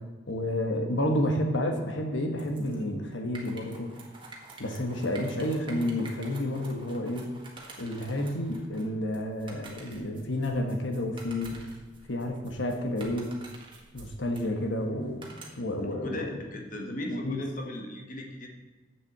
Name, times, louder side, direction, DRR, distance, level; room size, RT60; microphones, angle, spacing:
voice 1, 0.3-3.9 4.6-7.3 7.8-11.6 12.1-13.3 13.9-15.3 15.6-16.5 17.1-17.4, left 1 dB, 70° left, 4 dB, 1.4 m, -30 dB
sound 1, 2.4-15.8, right 2 dB, 25° right, 1.7 m, -49 dB
voice 2, 15.8-18.5, left 1 dB, 40° left, 2 dB, 1.4 m, -37 dB
7.8 x 7.6 x 7.4 m, 1.3 s
head